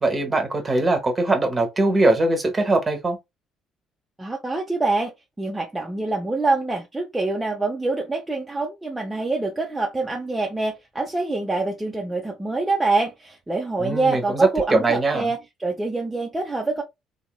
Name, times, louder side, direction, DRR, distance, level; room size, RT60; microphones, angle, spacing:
voice 1, 0.0-3.2 13.8-15.3, right 2 dB, 30° right, 1.0 m, -21 dB
voice 2, 4.2-5.1 5.4-16.8, right 3 dB, 10° right, 0.7 m, -25 dB
2.8 x 2.8 x 2.2 m
figure-of-eight pair, 45°, 0 cm